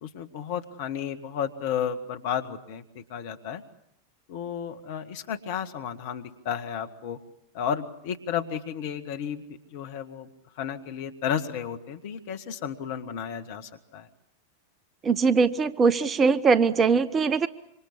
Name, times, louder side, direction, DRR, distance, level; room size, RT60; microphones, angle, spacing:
voice 1, 0.0-3.6 4.3-7.2 7.5-10.3 10.6-14.1, left 8 dB, 50° left, 7 dB, 2.1 m, -33 dB
voice 2, 15.0-17.5, right 5 dB, 25° right, 16 dB, 1.1 m, -21 dB
27.0 x 25.0 x 8.4 m, 0.76 s
figure-of-eight pair, 90°, 0 cm